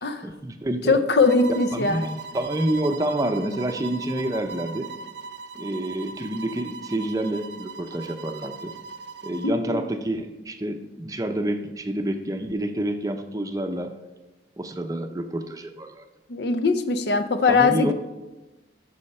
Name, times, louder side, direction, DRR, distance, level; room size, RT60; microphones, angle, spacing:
voice 1, 0.2-1.0 1.7-4.9 5.5-8.7 9.2-13.9 14.6-16.0 17.5-17.9, right 1 dB, 20° right, 6 dB, 0.6 m, -28 dB
voice 2, 0.9-2.1 9.4-9.9 16.3-17.9, left 4 dB, 70° left, 10 dB, 0.6 m, -21 dB
sound 1, 1.2-9.6, right 5 dB, 75° right, 0.5 m, -39 dB
13.5 x 5.6 x 4.3 m, 1.1 s
head